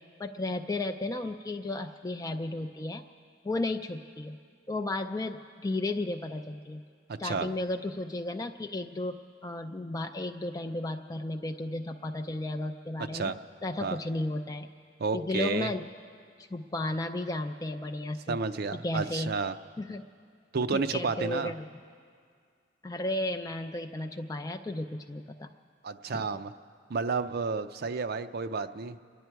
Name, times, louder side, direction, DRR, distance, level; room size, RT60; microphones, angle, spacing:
voice 1, 0.0-3.0 3.4-4.4 4.7-6.8 7.2-9.2 9.4-13.3 13.6-14.7 15.1-15.9 16.5-18.4 18.8-19.3 19.8-20.0 20.7-21.6 22.8-25.5 26.1-26.2, left 2 dB, 20° left, 4 dB, 0.4 m, -34 dB
voice 2, 7.1-7.5 13.1-13.4 13.8-14.0 15.0-15.7 18.3-19.6 20.5-21.5 25.8-26.5 26.9-29.0, right 4 dB, 55° right, 9 dB, 0.5 m, -31 dB
28.0 x 10.0 x 4.6 m, 2.2 s
head